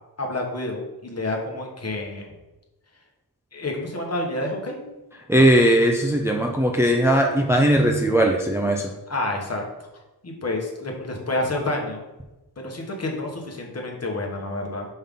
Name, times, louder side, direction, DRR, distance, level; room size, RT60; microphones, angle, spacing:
voice 1, 0.2-2.3 3.5-4.8 9.1-9.6 10.2-12.0 12.6-14.9, left 2 dB, 40° left, 1 dB, 1.3 m, -29 dB
voice 2, 5.3-8.8, right 1 dB, 5° right, 1 dB, 0.5 m, -18 dB
5.6 x 5.4 x 3.7 m, 1.0 s
wide cardioid pair, 115°, 40 cm